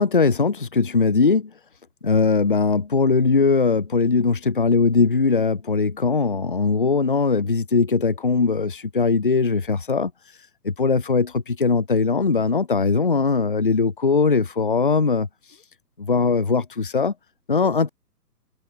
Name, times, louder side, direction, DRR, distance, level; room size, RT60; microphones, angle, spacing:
voice 1, 0.0-1.5 2.0-10.1 10.6-15.3 16.0-17.1 17.5-17.9, left 4 dB, 35° left, 0.5 m, -20 dB
figure-of-eight pair, 135°, 50 cm